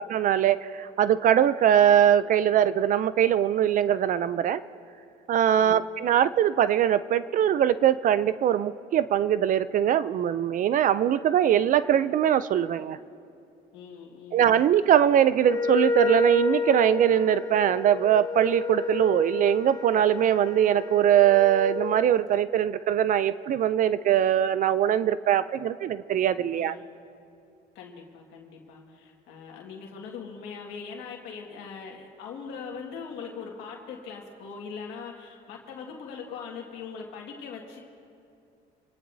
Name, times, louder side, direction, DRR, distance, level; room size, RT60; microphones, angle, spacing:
voice 1, 0.0-4.6 5.3-13.0 14.3-26.7, right 10 dB, 50° right, 15 dB, 0.4 m, -22 dB
voice 2, 13.7-14.5 26.5-26.9 27.8-37.8, left 6 dB, 90° left, -1 dB, 1.9 m, -41 dB
Wind instrument woodwind instrument, 15.4-22.1, left 4 dB, 20° left, 0.6 m, -30 dB
25.0 x 18.0 x 2.7 m, 2.5 s
cardioid pair, 110°, 17 cm